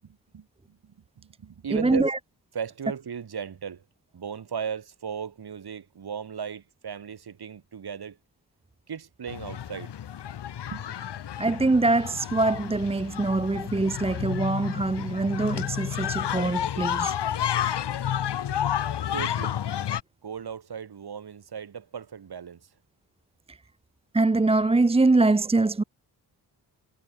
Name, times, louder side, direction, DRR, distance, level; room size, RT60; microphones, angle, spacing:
voice 1, 0.0-2.1 2.5-3.8 4.1-8.2 8.9-9.9 10.7-10.8 18.4-18.5 19.0-19.6 20.2-22.7, right 7 dB, 65° right, 3.9 m, -37 dB
voice 2, 1.7-2.2 11.4-17.1 23.5-23.6 24.1-25.8, right 3 dB, 15° right, 0.7 m, -23 dB
sound 1, 9.3-20.0, left 10 dB, 80° left, 1.7 m, -31 dB
cardioid pair, 70°, 41 cm